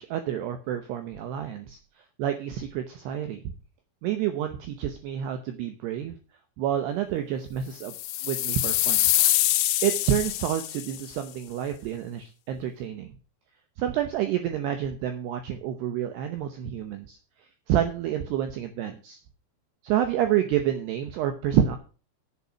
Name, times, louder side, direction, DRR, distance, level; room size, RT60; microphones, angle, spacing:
voice 1, 0.0-1.8 2.2-3.4 4.0-6.2 6.6-7.9 8.2-9.1 9.8-13.1 13.8-17.2 17.7-19.2 19.8-21.8, right 10 dB, 80° right, 7 dB, 2.4 m, -28 dB
sound 1, 7.8-11.0, left 14 dB, 90° left, 2.4 m, -25 dB
8.5 x 8.4 x 6.2 m, 0.36 s
omnidirectional pair, 6.0 m